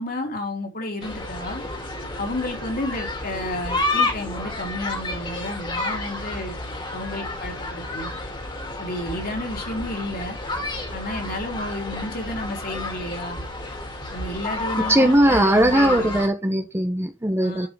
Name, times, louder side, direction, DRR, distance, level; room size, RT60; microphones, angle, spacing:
voice 1, 0.0-1.6 2.2-6.6 6.9-8.1 8.8-10.4 10.9-13.4 14.1-16.2 17.4-17.7, left 1 dB, 45° left, 3.4 m, -31 dB
sound 1, 1.0-16.3, left 2 dB, 25° left, 2.7 m, -30 dB
voice 2, 14.9-17.7, right 1 dB, 10° right, 0.9 m, -19 dB
11.5 x 5.6 x 3.6 m
head